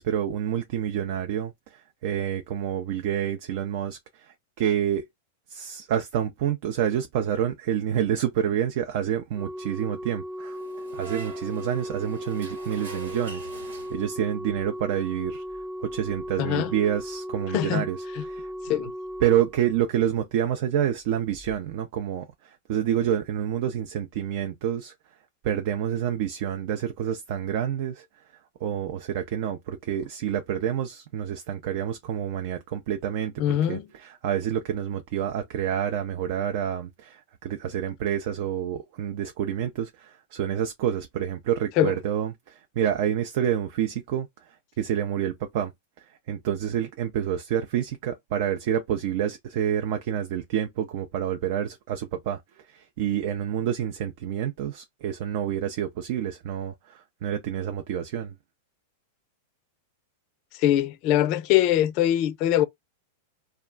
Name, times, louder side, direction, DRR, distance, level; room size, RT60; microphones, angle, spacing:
voice 1, 0.0-5.0 5.5-10.6 10.9-15.4 15.8-18.5 19.2-24.9 25.4-28.0 28.6-45.7 46.0-58.3, right 10 dB, 60° right, 0.5 m, -28 dB
Organ, 9.4-20.2 21.4-21.6, equal, 10° right, 0.7 m, -37 dB
sound 1, 10.5-14.4, right 5 dB, 80° right, 1.1 m, -44 dB
voice 2, 16.4-16.7 17.5-17.8 18.7-18.9 33.4-33.8 41.8-41.9 60.6-62.6, left 12 dB, 50° left, 0.4 m, -22 dB
2.3 x 2.2 x 3.6 m
hypercardioid pair, 110°, 0 cm